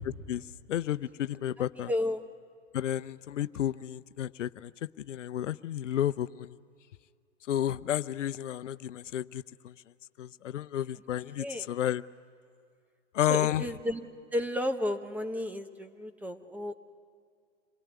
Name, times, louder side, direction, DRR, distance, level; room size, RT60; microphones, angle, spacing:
voice 1, 0.7-1.9 2.7-4.7 5.1-6.5 7.5-9.7 10.2-12.0 13.1-13.6, left 11 dB, 75° left, 14 dB, 0.7 m, -31 dB
voice 2, 1.8-2.2 11.4-11.7 13.3-14.1 14.3-16.7, left 1 dB, 5° right, 8 dB, 0.7 m, -32 dB
27.0 x 19.5 x 9.5 m, 2.3 s
hypercardioid pair, 120°, 37 cm